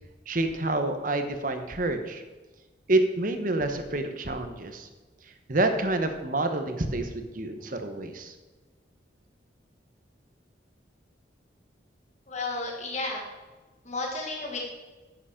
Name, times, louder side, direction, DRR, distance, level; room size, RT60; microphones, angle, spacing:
voice 1, 0.3-2.2 2.9-4.9 5.5-8.3, right 2 dB, 45° right, 7 dB, 1.0 m, -28 dB
voice 2, 12.3-13.2 13.9-14.6, left 3 dB, 40° left, -1 dB, 1.8 m, -32 dB
9.9 x 8.2 x 5.1 m, 1.2 s
head